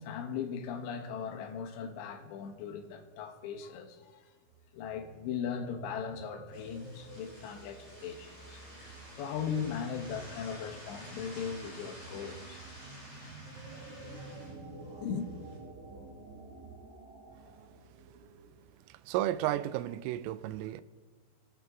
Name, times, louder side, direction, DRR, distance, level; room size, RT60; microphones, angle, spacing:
voice 1, 0.0-4.2 4.7-8.6 9.2-12.6 13.7-13.9 15.0-15.3, left 7 dB, 70° left, 3.1 m, -38 dB
sound 1, 4.5-18.6, right 2 dB, 40° right, 3.3 m, -50 dB
sound 2, 6.5-15.6, equal, 15° right, 3.7 m, -51 dB
voice 2, 18.9-20.8, right 13 dB, 85° right, 3.2 m, -33 dB
24.5 x 9.4 x 3.7 m
omnidirectional pair, 5.8 m